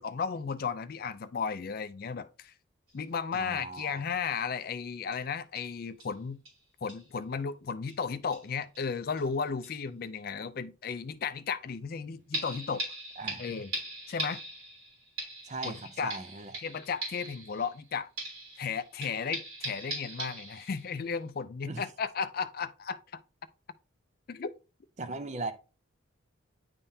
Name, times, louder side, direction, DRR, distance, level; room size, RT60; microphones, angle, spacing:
voice 1, 0.0-2.5 2.9-6.4 6.8-12.9 13.4-13.7 14.1-14.4 15.6-16.1 16.6-18.1 18.6-23.2 24.3-24.5, left 5 dB, 45° left, 0.4 m, -34 dB
sound 1, 2.9-3.0 3.3-3.4 3.8-3.9 4.2-4.3 5.1-5.2 5.5-5.7 6.0-6.1 6.4-6.6 6.9-7.1 7.9-8.0 8.3-8.9 9.2-9.3 9.6-9.7 12.3-17.9 18.2-21.0 21.4-21.5, right 1 dB, 80° right, 3.2 m, -40 dB
voice 2, 3.3-4.0 13.2-13.4 15.4-16.5 21.7-21.8 25.0-25.5, right 3 dB, 35° right, 0.5 m, -38 dB
9.7 x 3.6 x 2.7 m
head